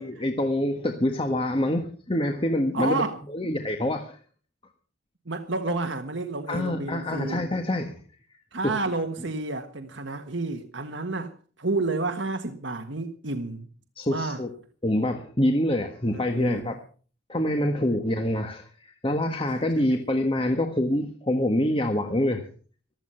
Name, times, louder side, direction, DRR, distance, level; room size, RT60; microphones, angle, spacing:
voice 1, 0.0-3.0 3.3-4.2 6.5-7.9 8.6-8.7 14.0-14.5 14.8-16.7 17.3-22.5, left 1 dB, 25° left, 1.6 m, -26 dB
voice 2, 2.7-3.2 3.4-3.6 5.2-7.4 8.5-11.3 11.6-13.7 14.1-14.4 16.1-16.8 19.7-19.8, right 3 dB, 65° right, 1.5 m, -30 dB
15.5 x 13.0 x 5.7 m
head